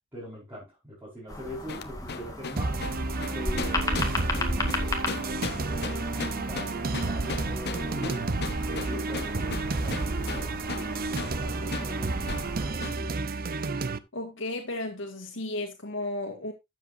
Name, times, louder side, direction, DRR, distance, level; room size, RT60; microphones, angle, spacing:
voice 1, 0.1-2.8 3.3-4.2 4.5-8.3 8.6-13.2, right 1 dB, 10° right, 5.3 m, -42 dB
sound 1, 1.3-12.7, left 1 dB, 20° left, 2.2 m, -35 dB
sound 2, 1.7-10.9 11.2-11.4 11.7-11.9 12.3-12.5 12.8-13.0, left 4 dB, 60° left, 1.0 m, -36 dB
sound 3, 2.6-14.0, right 3 dB, 50° right, 0.7 m, -31 dB
voice 2, 14.1-16.5, left 2 dB, 80° left, 2.0 m, -34 dB
13.0 x 7.6 x 2.7 m
head